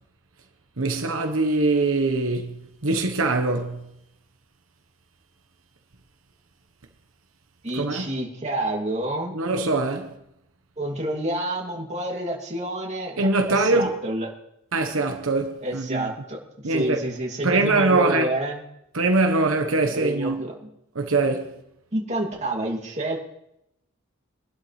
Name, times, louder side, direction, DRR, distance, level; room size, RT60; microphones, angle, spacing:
voice 1, 0.8-3.9 7.8-8.1 9.3-10.1 13.2-13.9 14.7-16.1 16.6-17.0 17.4-18.3 18.9-20.4 20.9-21.5, right 2 dB, 90° right, 1.1 m, -23 dB
voice 2, 7.6-9.4 10.8-14.3 15.6-16.4 16.6-18.6 19.9-20.5 21.9-23.2, right 1 dB, 35° right, 2.6 m, -28 dB
22.5 x 12.0 x 3.2 m
head